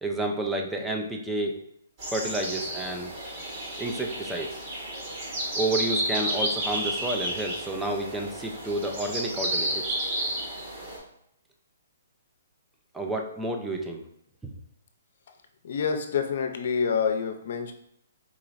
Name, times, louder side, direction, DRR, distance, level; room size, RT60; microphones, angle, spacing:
voice 1, 0.0-1.6 2.1-3.1 3.8-4.5 5.5-9.9 12.9-14.0 14.4-14.5, right 1 dB, 5° right, 2 dB, 0.4 m, -30 dB
sound 1, 2.0-11.0, right 1 dB, 40° right, 1.3 m, -32 dB
voice 2, 15.6-17.7, left 6 dB, 60° left, 5 dB, 0.5 m, -27 dB
4.1 x 2.9 x 2.5 m, 0.73 s
hypercardioid pair, 145°, 0 cm